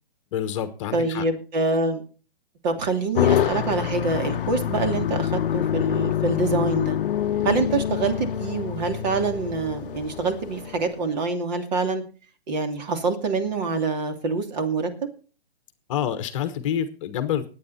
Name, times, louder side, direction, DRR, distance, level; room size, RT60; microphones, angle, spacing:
voice 1, 0.3-1.2 15.9-17.5, left 9 dB, 30° left, 11 dB, 1.2 m, -27 dB
voice 2, 0.9-2.0 2.6-7.0 7.4-12.0 12.5-15.1, right 3 dB, 45° right, 6 dB, 2.8 m, -26 dB
sound 1, 3.1-10.9, left 10 dB, 60° left, 0.7 m, -26 dB
20.0 x 8.8 x 4.2 m, 0.37 s
hypercardioid pair, 155°, 31 cm